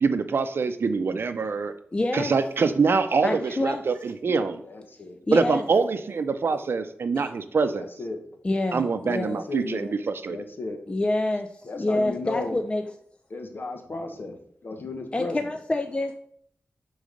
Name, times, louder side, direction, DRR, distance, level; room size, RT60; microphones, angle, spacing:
voice 1, 0.0-1.7 2.1-4.6 5.3-7.9 8.7-10.4, right 4 dB, 70° right, 10 dB, 0.5 m, -25 dB
voice 2, 1.9-2.3 3.2-3.8 5.3-5.6 7.2-7.3 8.4-9.4 10.9-12.8 15.1-16.1, left 2 dB, 25° left, 6 dB, 0.4 m, -27 dB
voice 3, 4.6-5.2 7.7-8.2 9.1-9.9 10.3-10.8 11.6-12.6 13.3-14.3 14.6-15.5, left 3 dB, 55° left, 4 dB, 1.1 m, -34 dB
6.3 x 3.9 x 5.2 m, 0.67 s
wide cardioid pair, 75°, 4 cm